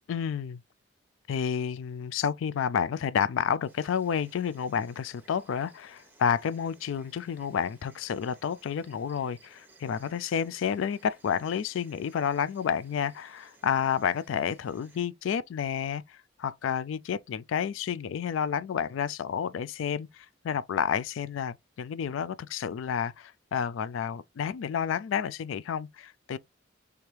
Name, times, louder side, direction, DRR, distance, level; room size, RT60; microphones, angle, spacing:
voice 1, 0.1-0.6 1.3-26.4, left 7 dB, 75° left, 0.3 m, -30 dB
Insect, 3.7-15.0, right 3 dB, 10° right, 0.9 m, -60 dB
3.4 x 3.3 x 4.4 m
head